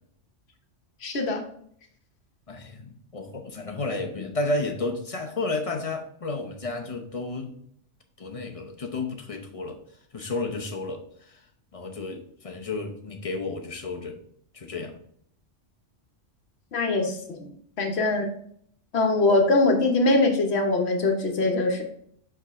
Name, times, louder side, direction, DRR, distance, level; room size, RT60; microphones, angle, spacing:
voice 1, 1.0-1.4 16.7-17.5 17.8-18.3 18.9-21.8, left 2 dB, 60° left, 4 dB, 1.2 m, -22 dB
voice 2, 2.5-7.5 8.2-9.8 10.1-11.4 11.7-14.2 14.5-15.0, left 2 dB, 35° left, 3 dB, 0.8 m, -32 dB
5.3 x 5.0 x 3.6 m, 0.65 s
omnidirectional pair, 1.2 m